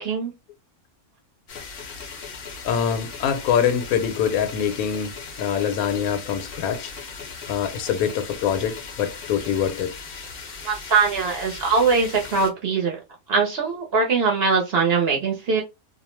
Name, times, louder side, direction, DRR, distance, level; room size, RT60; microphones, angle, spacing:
voice 1, 0.0-0.3 10.6-13.0 13.3-15.6, right 5 dB, 55° right, 0.7 m, -21 dB
sound 1, 1.5-12.5, left 5 dB, 55° left, 0.7 m, -38 dB
voice 2, 2.6-6.9 7.5-9.9, left 8 dB, 75° left, 1.0 m, -24 dB
2.4 x 2.1 x 3.0 m
omnidirectional pair, 1.5 m